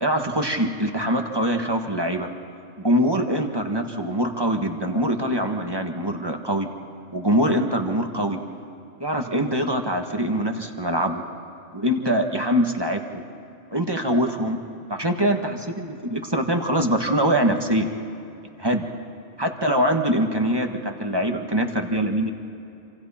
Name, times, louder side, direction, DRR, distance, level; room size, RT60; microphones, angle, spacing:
voice 1, 0.0-2.3 2.8-6.7 7.1-8.4 9.0-11.2 11.7-13.2 13.7-14.6 14.9-17.9 18.6-18.8 19.4-22.3, equal, 20° right, 4 dB, 1.5 m, -23 dB
27.0 x 27.0 x 4.4 m, 2.8 s
omnidirectional pair, 1.2 m